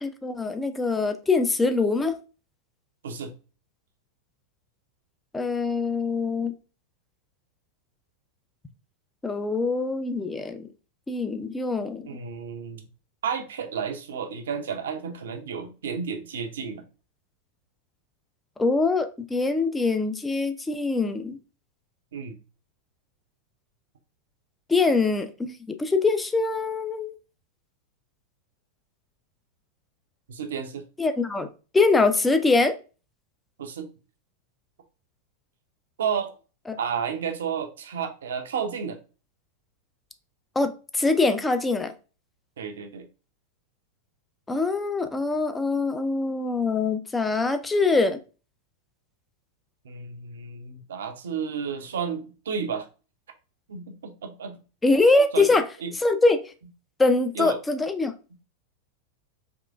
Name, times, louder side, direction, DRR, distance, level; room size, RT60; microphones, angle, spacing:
voice 1, 0.0-2.1 5.3-6.5 9.2-10.7 11.1-12.1 18.6-21.4 24.7-27.2 31.0-31.5 31.7-32.7 36.7-36.8 40.6-41.9 44.5-48.2 54.8-55.6 55.9-56.5 57.0-58.1, left 3 dB, 10° left, 0.4 m, -23 dB
voice 2, 12.0-12.9 13.2-16.8 22.1-22.4 30.3-30.8 33.6-33.9 36.0-36.3 36.8-39.0 42.6-43.1 49.8-52.9 53.7-54.6 55.3-55.9 57.3-57.6, right 6 dB, 60° right, 0.6 m, -32 dB
3.6 x 3.0 x 2.5 m
figure-of-eight pair, 90°, 0 cm